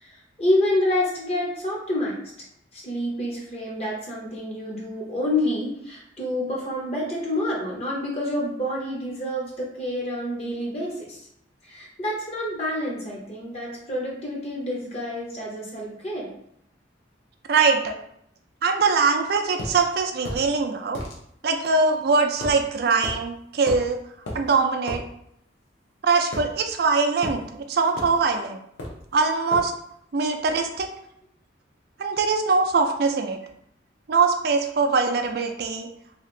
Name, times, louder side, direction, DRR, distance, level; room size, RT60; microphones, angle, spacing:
voice 1, 0.0-2.2 2.7-11.3 11.6-16.3, left 1 dB, 35° left, -3 dB, 0.7 m, -28 dB
voice 2, 17.5-17.9 18.6-21.0 21.4-24.0 24.3-25.0 26.0-28.6 29.1-29.7 30.1-30.9 32.0-33.4 34.1-35.9, right 4 dB, 55° right, 5 dB, 0.4 m, -22 dB
sound 1, 19.6-19.8 20.2-20.4 20.9-21.2 22.4-22.6 23.0-23.2 23.7-23.9 24.3-24.4 24.9-25.0 26.3-26.9 27.2-27.4 28.0-28.2 28.8-29.1 29.5-29.7, left 1 dB, 70° left, 0.8 m, -33 dB
2.8 x 2.4 x 3.1 m, 0.72 s
head